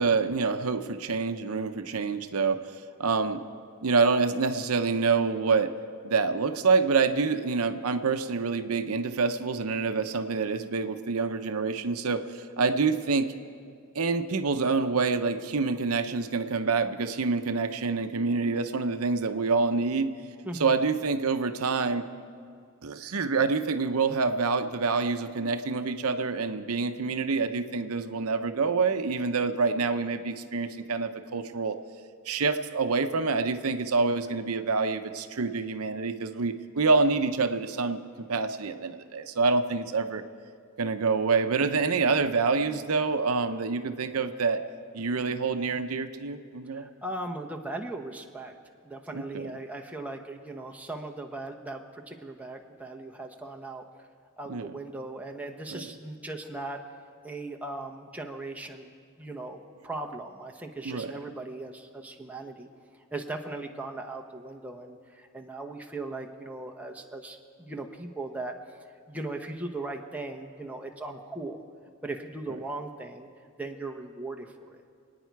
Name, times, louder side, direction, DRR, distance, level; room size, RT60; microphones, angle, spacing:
voice 1, 0.0-2.7 3.0-3.4 3.8-5.7 6.0-13.3 13.9-20.1 20.6-22.1 22.8-31.8 32.3-38.0 38.3-40.2 40.8-44.6 44.9-46.9 49.1-49.5 54.5-54.7 55.7-55.8 60.8-61.1, right 4 dB, 85° right, 8 dB, 0.7 m, -27 dB
voice 2, 46.7-48.5 48.8-53.8 54.4-56.8 57.2-58.9 59.2-62.7 63.1-68.5 69.1-71.6 72.0-73.3 73.6-74.8, right 2 dB, 5° right, 2 dB, 1.0 m, -38 dB
27.0 x 9.5 x 4.7 m, 2.2 s
head